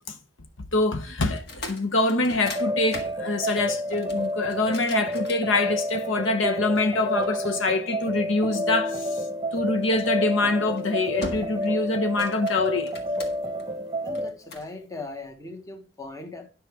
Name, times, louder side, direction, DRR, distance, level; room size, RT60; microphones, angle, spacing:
voice 1, 0.7-9.3 9.5-12.9, left 2 dB, 80° left, 0.9 m, -25 dB
sound 1, 1.3-6.0 6.7-8.1 9.8-10.1 10.6-10.9 11.2-11.8 12.0-13.6 14.1-14.7, left 2 dB, 60° left, 1.8 m, -40 dB
sound 2, 2.5-14.3, equal, 20° right, 1.0 m, -30 dB
voice 2, 14.0-16.5, left 2 dB, 20° left, 1.3 m, -39 dB
10.0 x 5.8 x 4.9 m
head